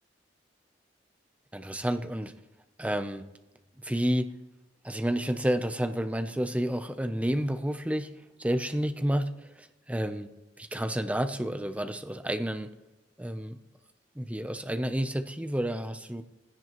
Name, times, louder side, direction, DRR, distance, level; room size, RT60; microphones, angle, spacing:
voice 1, 1.5-2.3 2.8-3.2 3.8-4.3 4.8-8.1 8.4-9.3 9.6-10.3 10.6-12.7 13.2-13.6 14.2-16.2, equal, 10° right, 7 dB, 0.7 m, -30 dB
19.5 x 16.5 x 3.1 m, 1.0 s
head